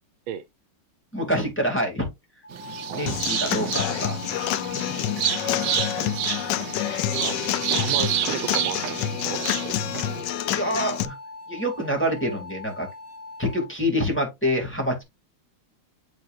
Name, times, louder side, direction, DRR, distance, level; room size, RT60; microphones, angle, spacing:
voice 1, 1.1-2.1 2.9-4.2 4.6-5.3 10.5-11.1 11.5-12.9 13.4-15.0, equal, 5° left, 2.5 m, -26 dB
sound 1, 2.4-13.7, left 3 dB, 40° left, 2.6 m, -41 dB
sound 2, 2.5-10.2, right 12 dB, 70° right, 1.2 m, -30 dB
voice 2, 2.8-3.2 5.4-6.2 7.1-7.4 7.7-9.8 10.1-10.4, right 11 dB, 85° right, 1.5 m, -36 dB
Human voice / Acoustic guitar / Drum, 3.1-11.0, left 12 dB, 75° left, 1.1 m, -28 dB
7.9 x 5.0 x 2.6 m
omnidirectional pair, 2.3 m